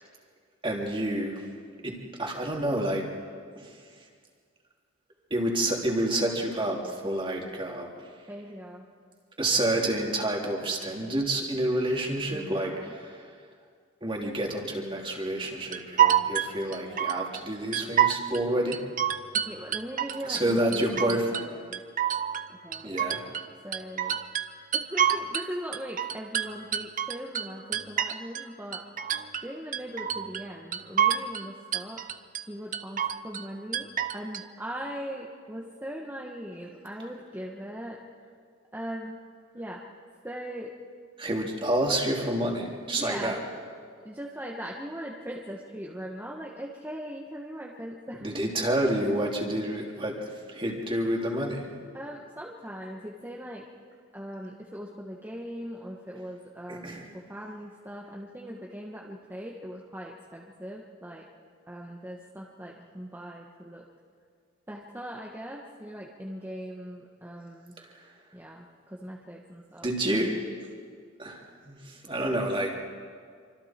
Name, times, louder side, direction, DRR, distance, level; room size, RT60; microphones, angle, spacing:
voice 1, 0.6-1.4 1.8-1.9 2.2-3.1 3.6-3.8 5.3-7.9 9.4-13.3 14.0-18.8 20.3-21.3 22.8-23.2 41.2-43.4 48.2-51.6 56.7-57.1 67.8-68.1 69.8-70.3 71.2-72.7, right 1 dB, 25° right, -1 dB, 3.1 m, -29 dB
voice 2, 8.3-8.8 12.3-13.0 19.3-21.8 22.5-23.1 23.6-24.2 24.7-28.8 29.4-32.0 32.4-33.9 34.1-38.0 38.7-39.2 39.5-39.8 40.2-40.7 42.9-43.4 44.0-48.4 51.9-53.7 54.1-61.3 61.7-63.9 64.7-67.7 68.3-69.9, equal, 10° right, -2 dB, 1.4 m, -40 dB
sound 1, 15.7-17.4 17.7-18.4 18.7-20.4 20.7-21.5 21.7-23.5 23.7-25.5 25.7-28.5 28.7-29.5 29.7-30.5 30.7-31.5 31.7-32.4 32.7-33.5 33.7-34.4, right 9 dB, 40° right, 0.8 m, -27 dB
28.0 x 25.0 x 4.5 m, 2.1 s
head